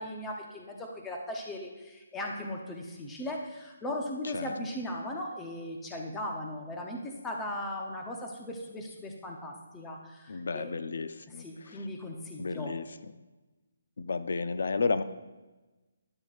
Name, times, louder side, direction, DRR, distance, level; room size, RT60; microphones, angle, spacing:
voice 1, 0.0-10.7 11.4-12.7, left 1 dB, 5° left, 0 dB, 0.7 m, -38 dB
voice 2, 10.3-11.9 12.4-12.8 14.0-15.0, left 4 dB, 60° left, 11 dB, 0.5 m, -32 dB
13.5 x 11.0 x 2.4 m, 1.2 s
hypercardioid pair, 175°, 0 cm